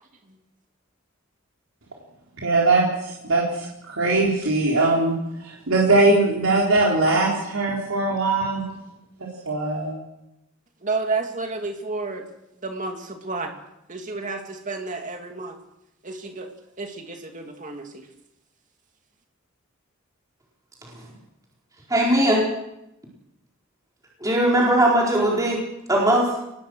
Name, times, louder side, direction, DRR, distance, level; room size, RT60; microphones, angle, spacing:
voice 1, 2.4-5.2 5.4-8.6 9.2-10.0, right 2 dB, 80° right, -3 dB, 4.1 m, -21 dB
voice 2, 10.8-12.2 12.6-13.5 13.9-15.6 16.0-16.5 16.8-17.9, right 3 dB, 40° right, 4 dB, 2.7 m, -30 dB
voice 3, 21.9-22.4 24.2-25.6 25.9-26.3, right 1 dB, 15° right, -3 dB, 4.3 m, -19 dB
23.5 x 19.5 x 6.4 m, 0.86 s
head